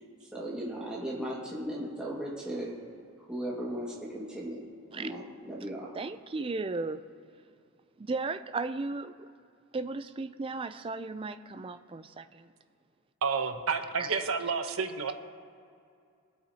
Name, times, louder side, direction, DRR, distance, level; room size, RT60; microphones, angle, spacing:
voice 1, 0.3-2.7 3.3-4.6 4.9-5.9, right 1 dB, 5° right, -6 dB, 1.8 m, -36 dB
voice 2, 5.9-7.0 8.0-9.3 9.7-12.5 14.0-14.2, right 3 dB, 25° right, 11 dB, 0.3 m, -35 dB
voice 3, 13.2-15.1, right 5 dB, 65° right, 7 dB, 0.9 m, -30 dB
21.0 x 8.1 x 2.8 m, 2.4 s
head